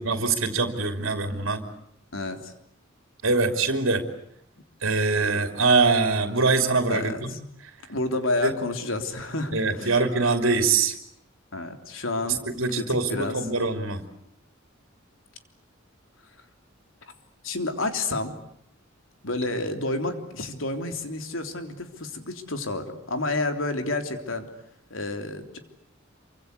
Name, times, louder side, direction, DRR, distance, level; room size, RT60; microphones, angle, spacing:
voice 1, 0.0-1.6 3.2-4.0 4.8-7.3 8.4-8.5 9.5-10.9 12.3-14.0, right 3 dB, 90° right, 6 dB, 3.1 m, -23 dB
voice 2, 2.1-2.5 6.9-7.4 7.9-10.0 11.5-12.4 12.7-13.4 17.4-18.3 19.2-24.5 24.9-25.6, left 2 dB, 80° left, 6 dB, 3.5 m, -30 dB
27.5 x 25.0 x 8.3 m, 0.72 s
head